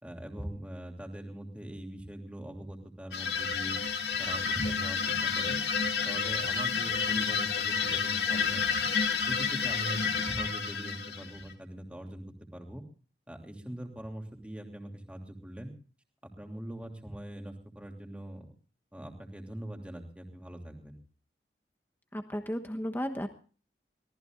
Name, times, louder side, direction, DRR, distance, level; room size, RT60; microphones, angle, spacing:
voice 1, 0.0-3.8 4.2-5.6 6.0-8.8 9.2-12.2 12.5-12.8 13.3-15.7 16.2-18.5 18.9-21.0, right 1 dB, 5° right, 2 dB, 3.0 m, -42 dB
sound 1, 3.1-11.5, left 5 dB, 75° left, 2.8 m, -30 dB
voice 2, 22.1-23.3, equal, 10° left, 5 dB, 1.2 m, -34 dB
24.5 x 18.0 x 2.5 m, 0.40 s
head